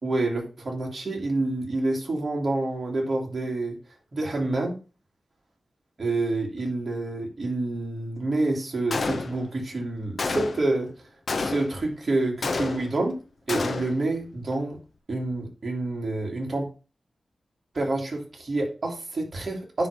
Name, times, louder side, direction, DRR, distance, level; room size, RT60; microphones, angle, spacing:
voice 1, 0.0-3.8 4.1-4.8 6.0-10.9 11.3-13.2 13.5-14.8 15.1-16.7 17.7-19.9, right 2 dB, 40° right, 0 dB, 2.3 m, -28 dB
Gunshot gunfire, 8.9-9.6 10.2-10.8 11.3-11.9 12.4-13.1 13.5-14.1, left 3 dB, 55° left, 0.7 m, -29 dB
9.8 x 3.3 x 5.2 m, 0.34 s
wide cardioid pair, 135°, 0 cm